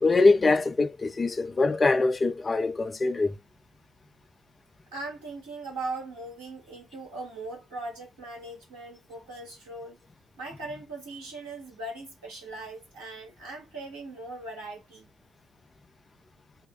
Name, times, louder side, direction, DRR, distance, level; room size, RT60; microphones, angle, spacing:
voice 1, 0.0-3.4, left 3 dB, 35° left, 0.8 m, -23 dB
voice 2, 4.9-10.0 10.4-15.1, right 2 dB, 85° right, 2.0 m, -39 dB
5.8 x 2.2 x 3.8 m
hypercardioid pair, 40°, 0 cm